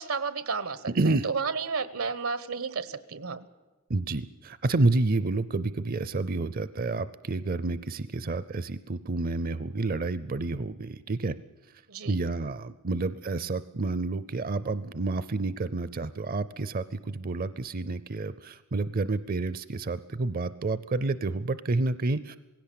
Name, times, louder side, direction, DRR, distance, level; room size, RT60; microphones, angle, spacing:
voice 1, 0.0-0.9 1.2-3.5 11.9-12.2, right 5 dB, 85° right, 15 dB, 1.1 m, -32 dB
voice 2, 0.9-1.3 3.9-11.4 12.1-22.4, right 3 dB, 45° right, 15 dB, 0.5 m, -29 dB
18.5 x 16.5 x 8.5 m, 1.2 s
head